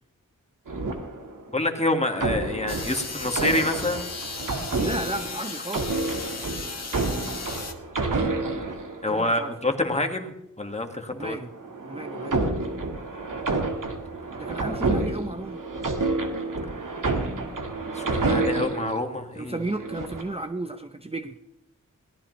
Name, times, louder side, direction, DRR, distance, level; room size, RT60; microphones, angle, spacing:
sound 1, 0.7-1.6 2.2-9.4 11.4-19.0 19.6-20.4, right 3 dB, 85° right, 1.8 m, -29 dB
voice 1, 1.5-4.0 9.0-11.4 17.9-19.6, left 2 dB, 20° left, 4 dB, 1.8 m, -27 dB
sound 2, 2.7-7.7, left 4 dB, 55° left, 1.5 m, -36 dB
voice 2, 4.7-5.9 9.1-9.5 11.1-11.5 11.8-12.4 14.4-15.6 19.4-21.4, right 2 dB, 20° right, 7 dB, 0.7 m, -33 dB
21.5 x 17.5 x 3.2 m, 0.84 s
wide cardioid pair, 85°, 31 cm